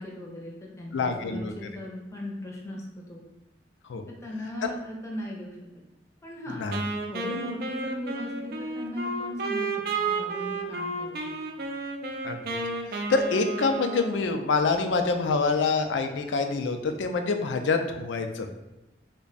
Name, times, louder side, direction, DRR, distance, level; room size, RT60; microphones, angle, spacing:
voice 1, 0.0-3.2 4.1-5.8 6.2-11.4, left 1 dB, 15° left, -3 dB, 0.6 m, -38 dB
voice 2, 0.9-1.5 3.9-4.0 6.6-6.8 12.2-12.6 12.9-18.5, left 4 dB, 85° left, 6 dB, 0.4 m, -26 dB
Wind instrument woodwind instrument, 6.7-14.6, right 3 dB, 55° right, 0.4 m, -32 dB
3.4 x 2.2 x 3.9 m, 0.97 s
head